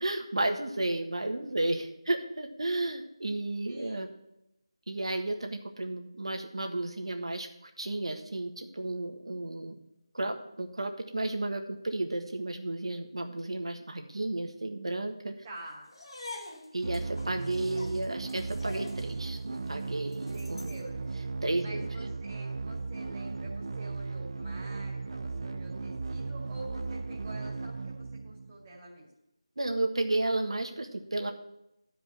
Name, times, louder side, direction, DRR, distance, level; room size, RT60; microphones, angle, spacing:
voice 1, 0.0-4.1 4.9-9.7 10.1-15.3 16.7-20.7 21.4-21.9 29.6-31.3, right 2 dB, 75° right, 5 dB, 1.5 m, -33 dB
voice 2, 3.7-4.0 15.4-15.9 20.3-21.1 21.6-29.1, right 1 dB, 20° right, -4 dB, 2.3 m, -47 dB
sound 1, 15.9-20.9, left 2 dB, 60° left, 1.8 m, -47 dB
sound 2, 16.8-28.8, right 3 dB, 60° right, 0.5 m, -36 dB
12.5 x 5.0 x 6.1 m, 0.86 s
figure-of-eight pair, 170°, 3 cm